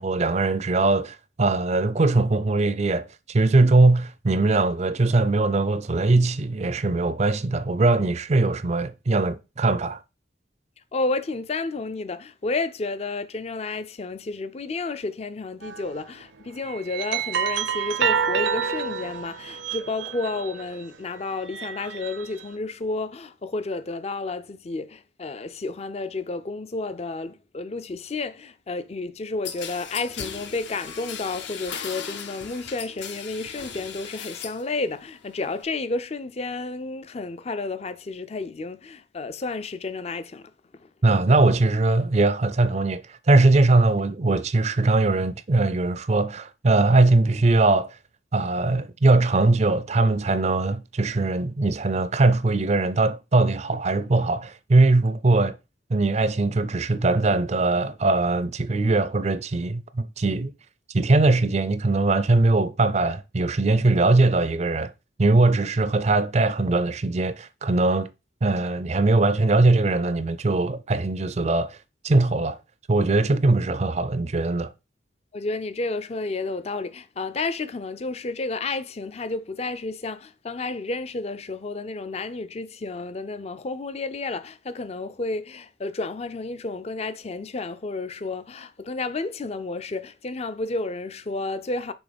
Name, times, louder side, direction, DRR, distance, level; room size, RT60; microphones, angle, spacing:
voice 1, 0.0-10.0 41.0-48.0 48.3-55.6 55.9-60.5 60.9-64.9 65.2-68.1 68.4-71.8 72.0-72.6 72.9-74.7, right 2 dB, 35° right, 0.4 m, -21 dB
voice 2, 10.9-40.9 75.3-91.9, left 3 dB, 35° left, 0.4 m, -31 dB
sound 1, 15.6-15.9 16.6-20.7 21.3-22.4, right 7 dB, 75° right, 0.6 m, -28 dB
sound 2, 29.4-34.7 35.0-35.6, left 7 dB, 70° left, 0.8 m, -37 dB
6.2 x 3.7 x 5.1 m
head